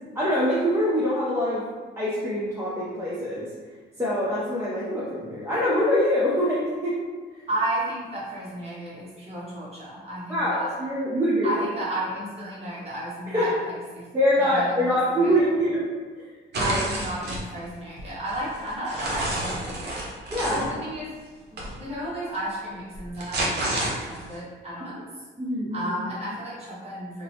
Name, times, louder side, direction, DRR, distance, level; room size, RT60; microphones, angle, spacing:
voice 1, 0.1-1.7 2.0-3.5 4.0-6.9 7.3-7.4 10.3-11.5 13.3-13.4 14.1-15.9 16.6-16.8 20.3-20.6 25.4-25.9, equal, 15° right, -8 dB, 0.6 m, -24 dB
voice 2, 7.5-10.7 11.4-14.1 14.4-15.4 16.6-20.0 20.5-21.1 21.5-25.1 25.7-27.2, right 1 dB, 30° right, -7 dB, 1.1 m, -33 dB
sound 1, 16.5-17.4 18.0-20.7 21.6-21.7 22.9-24.3, right 1 dB, 55° right, 0.7 m, -29 dB
2.9 x 2.0 x 2.8 m, 1.4 s
cardioid pair, 90°, 20 cm